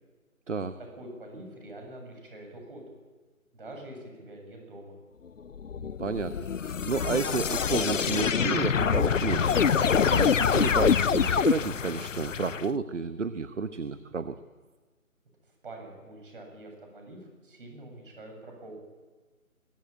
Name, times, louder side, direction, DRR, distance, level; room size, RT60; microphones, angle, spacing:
voice 1, 0.8-2.8 3.5-5.0 15.6-18.8, right 1 dB, 40° right, 3 dB, 7.8 m, -45 dB
sound 1, 5.5-12.6, left 7 dB, 65° left, 0.5 m, -25 dB
voice 2, 6.0-6.4 6.6-9.7 10.1-14.4, right 4 dB, 55° right, 12 dB, 1.1 m, -31 dB
22.5 x 13.0 x 8.9 m, 1.3 s
figure-of-eight pair, 160°, 42 cm